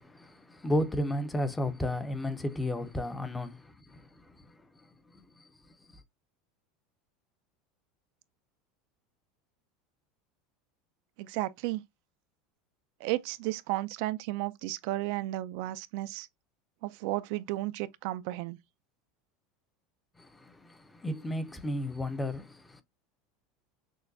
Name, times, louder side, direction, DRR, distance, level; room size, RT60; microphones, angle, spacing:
voice 1, 0.0-5.5 5.9-6.0 20.2-22.8, left 1 dB, 10° left, 0.5 m, -34 dB
voice 2, 11.2-11.8 13.0-16.3 16.8-18.6, right 17 dB, 65° right, 0.3 m, -33 dB
6.2 x 2.2 x 2.6 m
supercardioid pair, 135°, 0 cm